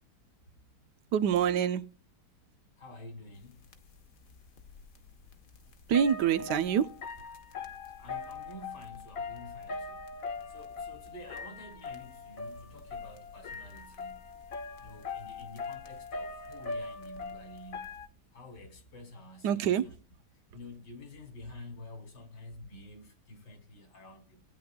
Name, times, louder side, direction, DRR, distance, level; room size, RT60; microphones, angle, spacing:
voice 1, 1.1-1.8 5.9-6.9 19.4-19.9, right 8 dB, 85° right, 1.3 m, -26 dB
voice 2, 2.8-3.6 8.0-10.1 10.5-14.3 14.8-18.0 18.3-19.7 20.5-24.4, left 1 dB, 80° left, 3.1 m, -49 dB
sound 1, 3.4-3.5 3.7-18.1, left 4 dB, 60° left, 1.5 m, -41 dB
18.0 x 9.5 x 2.3 m
omnidirectional pair, 1.8 m